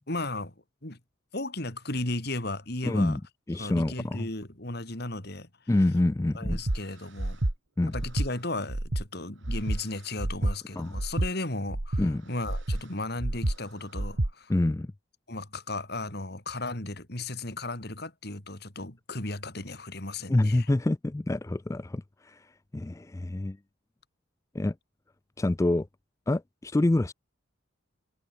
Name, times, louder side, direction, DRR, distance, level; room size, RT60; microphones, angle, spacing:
voice 1, 0.1-0.5 0.8-1.0 1.3-3.2 3.6-5.5 6.4-7.4 7.9-14.5 15.3-20.7, left 2 dB, 50° left, 3.5 m, -35 dB
voice 2, 2.8-3.2 3.5-4.3 5.7-6.6 7.8-7.9 10.8-10.9 12.0-12.3 14.5-14.9 20.3-23.6 24.5-24.7 25.4-25.9 26.3-27.1, left 1 dB, 15° left, 0.3 m, -26 dB
Breathing, 6.4-6.8 7.2-7.5 7.9-8.3 8.7-9.0 9.4-9.8 10.2-10.5 10.9-11.3 11.7-12.1 12.4-12.8 13.2-13.6 13.9-14.3, right 1 dB, 65° right, 1.6 m, -29 dB
head